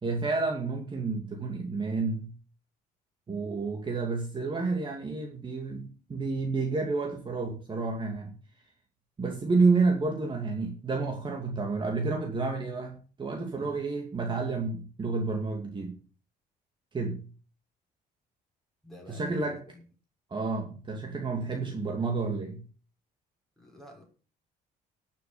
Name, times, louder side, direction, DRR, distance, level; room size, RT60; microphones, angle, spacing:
voice 1, 0.0-2.3 3.3-8.3 9.2-16.0 16.9-17.2 19.1-19.6 20.3-22.6, right 3 dB, 30° right, 2 dB, 2.4 m, -30 dB
voice 2, 18.8-19.8 21.3-22.0 23.6-24.0, left 1 dB, ahead, -1 dB, 6.0 m, -50 dB
12.5 x 6.8 x 6.8 m, 0.38 s
cardioid pair, 110°, 17 cm